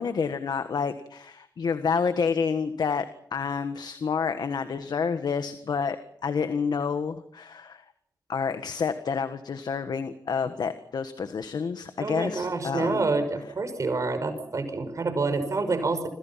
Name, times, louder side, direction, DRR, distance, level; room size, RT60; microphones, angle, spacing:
voice 1, 0.0-3.0 3.3-6.0 6.2-7.8 8.3-13.0, left 5 dB, 75° left, 10 dB, 1.6 m, -29 dB
voice 2, 12.0-16.1, right 3 dB, 50° right, 8 dB, 5.9 m, -27 dB
27.5 x 27.0 x 5.8 m, 0.67 s
wide cardioid pair, 120°, 7 cm